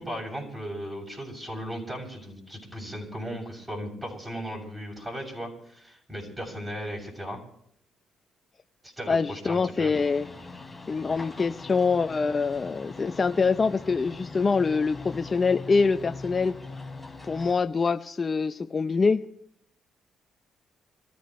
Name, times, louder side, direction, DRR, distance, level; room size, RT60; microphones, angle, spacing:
voice 1, 0.0-7.4 8.8-9.9, equal, 15° right, -2 dB, 7.1 m, -36 dB
voice 2, 9.1-10.3 10.9-16.5 17.3-19.2, left 4 dB, 35° left, 8 dB, 0.6 m, -25 dB
sound 1, 9.9-17.5, left 3 dB, 10° left, 3.7 m, -42 dB
26.5 x 14.5 x 3.2 m, 0.70 s
cardioid pair, 90°, 0 cm